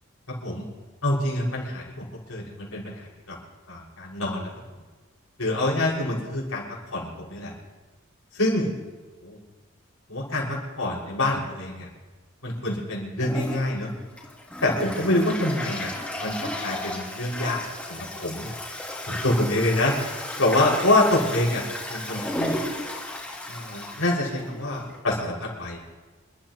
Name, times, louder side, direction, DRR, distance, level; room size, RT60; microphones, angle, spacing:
voice 1, 0.3-0.7 1.0-3.3 3.7-4.5 5.4-6.6 6.9-7.5 8.3-8.7 9.2-9.4 10.1-11.9 12.4-13.9 14.6-15.9 16.2-17.6 17.9-18.5 19.1-19.9 20.4-21.6 21.9-22.6 23.5-25.8, left 1 dB, 85° left, -4 dB, 6.1 m, -26 dB
Toilet flush, 13.2-25.0, left 1 dB, 5° left, 2.6 m, -34 dB
28.0 x 13.0 x 3.1 m, 1.3 s
head